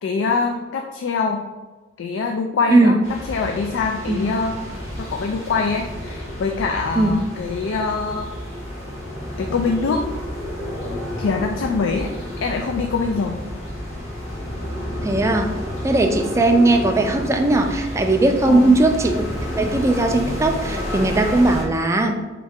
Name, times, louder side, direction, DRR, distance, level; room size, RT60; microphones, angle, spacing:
voice 1, 0.0-1.4 2.0-3.0 3.3-4.7 5.0-8.3 9.4-10.0 11.2-12.1 12.4-13.4 18.5-18.8, left 4 dB, 70° left, 4 dB, 0.3 m, -24 dB
sound 1, 3.0-21.6, left 1 dB, 85° left, 1.4 m, -30 dB
voice 2, 15.0-15.5 15.8-19.2 19.6-22.2, right 2 dB, 15° right, 4 dB, 0.3 m, -18 dB
3.6 x 3.2 x 3.5 m, 1.2 s
head